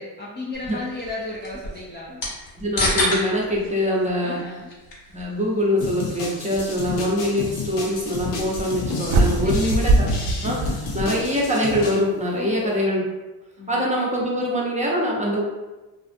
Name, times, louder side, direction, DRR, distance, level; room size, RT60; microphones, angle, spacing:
voice 1, 0.0-2.2 4.2-4.7 9.4-9.9 12.3-12.8 13.6-13.9, left 2 dB, 25° left, -6 dB, 0.4 m, -34 dB
sound 1, 0.5-11.2, left 1 dB, 60° left, 1.1 m, -33 dB
voice 2, 2.6-4.4 5.1-10.1 10.3-13.0 13.7-15.4, equal, 15° right, -4 dB, 0.7 m, -24 dB
sound 2, 5.8-12.0, left 4 dB, 85° left, 0.7 m, -31 dB
sound 3, 9.1-11.4, right 2 dB, 55° right, 0.6 m, -21 dB
2.4 x 2.4 x 2.5 m, 1.1 s
supercardioid pair, 70°, 49 cm